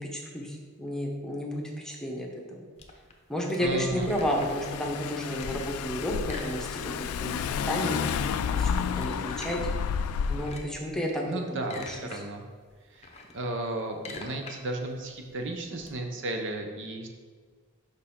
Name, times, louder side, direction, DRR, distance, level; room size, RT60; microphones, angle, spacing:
voice 1, 0.0-2.7 3.3-6.9 7.2-9.6 10.3-12.2, equal, 5° left, -1 dB, 0.9 m, -32 dB
sound 1, 2.8-4.7 5.0-5.7 6.2-7.1 7.4-7.5 7.8-9.6 10.2-10.8 11.4-12.2 12.6-15.9, left 3 dB, 30° left, 0.7 m, -45 dB
voice 2, 3.6-4.1 11.2-12.4 12.9-17.1, right 1 dB, 55° right, 3 dB, 0.7 m, -34 dB
Car / Engine, 3.7-10.6, left 6 dB, 70° left, 0.3 m, -31 dB
6.5 x 5.6 x 3.7 m, 1.5 s
head